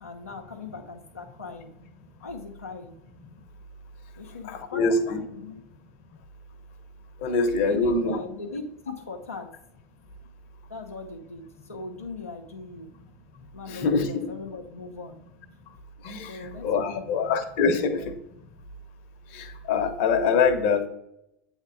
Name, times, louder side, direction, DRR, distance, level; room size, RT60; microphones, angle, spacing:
voice 1, 0.0-1.7 2.2-2.9 4.2-5.6 7.6-9.5 10.7-12.9 13.5-15.2 16.3-18.1, left 3 dB, 90° left, 0 dB, 0.7 m, -40 dB
voice 2, 4.4-5.2 7.2-8.2 13.7-14.1 16.0-18.1 19.3-20.9, left 4 dB, 55° left, 7 dB, 0.9 m, -24 dB
8.1 x 3.7 x 4.8 m, 0.77 s
figure-of-eight pair, 80°, 7 cm